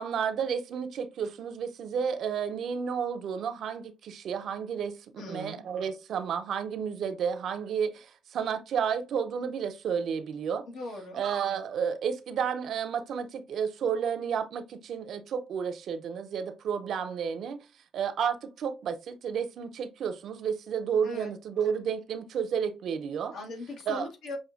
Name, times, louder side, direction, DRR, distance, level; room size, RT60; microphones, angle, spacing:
voice 1, 0.0-10.7 11.1-17.6 17.9-23.3 23.9-24.1, right 7 dB, 70° right, 0.6 m, -31 dB
voice 2, 5.2-5.6 10.7-11.2 21.0-21.3 23.3-24.4, left 2 dB, 80° left, 1.5 m, -39 dB
6.3 x 2.7 x 2.5 m
cardioid pair, 90°, 0 cm